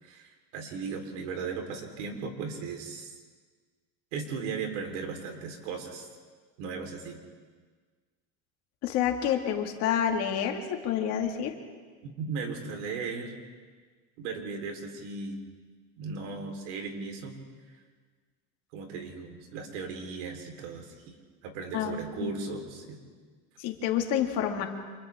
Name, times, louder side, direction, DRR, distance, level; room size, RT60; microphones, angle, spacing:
voice 1, 0.0-3.1 4.1-6.1 6.6-7.2 12.0-13.3 14.2-15.4 16.0-17.4 18.7-21.2 21.4-23.0, right 5 dB, 85° right, 3 dB, 3.9 m, -37 dB
voice 2, 8.8-11.6 21.7-22.3 23.6-24.6, left 9 dB, 45° left, 3 dB, 2.1 m, -28 dB
30.0 x 27.0 x 3.6 m, 1.5 s
cardioid pair, 180°, 35 cm